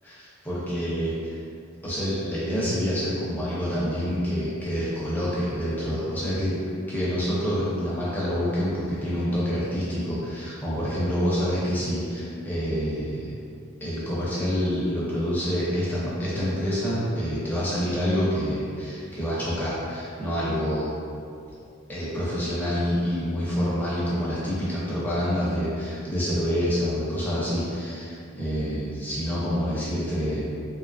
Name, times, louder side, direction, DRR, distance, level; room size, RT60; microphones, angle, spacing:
voice 1, 0.0-1.4 1.8-6.6 6.9-13.3 13.8-20.9 21.9-30.5, equal, 10° left, -9 dB, 0.5 m, -27 dB
2.8 x 2.3 x 2.5 m, 2.4 s
head